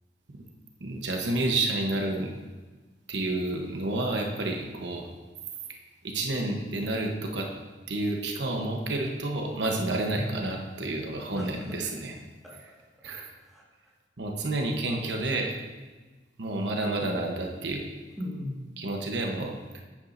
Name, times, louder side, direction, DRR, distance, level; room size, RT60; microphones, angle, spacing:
voice 1, 0.8-2.3 3.1-5.1 6.0-7.5 7.9-12.1 13.0-13.3 14.2-15.6 16.4-17.8 18.8-19.8, right 2 dB, 85° right, 1 dB, 1.0 m, -30 dB
voice 2, 11.3-11.8 12.4-13.0 13.4-13.7 18.2-18.6, left 1 dB, ahead, -5 dB, 1.7 m, -39 dB
9.9 x 8.9 x 2.7 m, 1.3 s
head